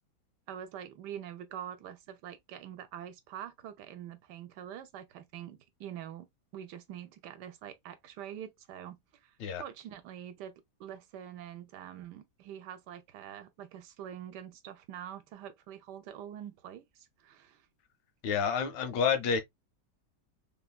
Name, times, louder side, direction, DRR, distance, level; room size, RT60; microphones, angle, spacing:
voice 1, 0.5-6.3 6.5-17.6, right 10 dB, 80° right, 1.2 m, -45 dB
voice 2, 18.2-19.4, left 6 dB, 90° left, 1.4 m, -29 dB
3.3 x 2.3 x 2.2 m
omnidirectional pair, 1.9 m